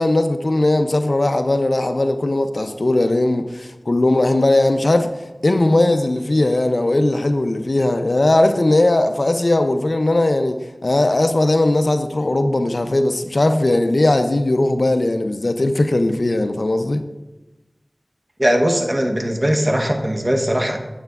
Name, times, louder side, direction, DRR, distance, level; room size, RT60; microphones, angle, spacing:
voice 1, 0.0-5.1 5.4-17.0, left 2 dB, 70° left, 0.4 m, -18 dB
voice 2, 18.4-20.8, equal, 40° right, 0.9 m, -19 dB
9.0 x 6.5 x 2.3 m
wide cardioid pair, 40°, 0 cm